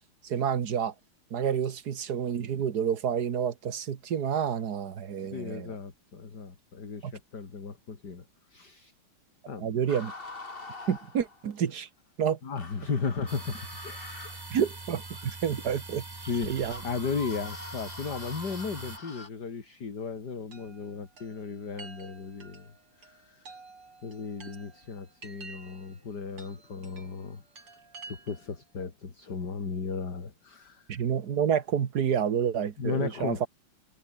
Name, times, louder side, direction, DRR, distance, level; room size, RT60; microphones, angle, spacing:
voice 1, 0.2-0.9 1.3-5.7 7.0-7.1 9.6-10.1 10.9-11.9 12.2-12.4 14.5-16.0 16.4-16.8 30.9-33.5, right 8 dB, 50° right, 1.7 m, -29 dB
voice 2, 5.2-8.2 8.5-8.9 9.5-9.7 12.4-14.0 16.2-16.5 16.8-23.6 24.0-27.8 28.0-31.0 32.8-33.5, left 5 dB, 50° left, 3.3 m, -36 dB
sound 1, 9.9-11.6 12.6-19.3, left 3 dB, 25° left, 2.6 m, -45 dB
sound 2, 13.3-19.0, right 3 dB, 25° right, 0.5 m, -43 dB
Chime, 20.5-28.6, right 4 dB, 80° right, 5.7 m, -51 dB
omnidirectional pair, 2.4 m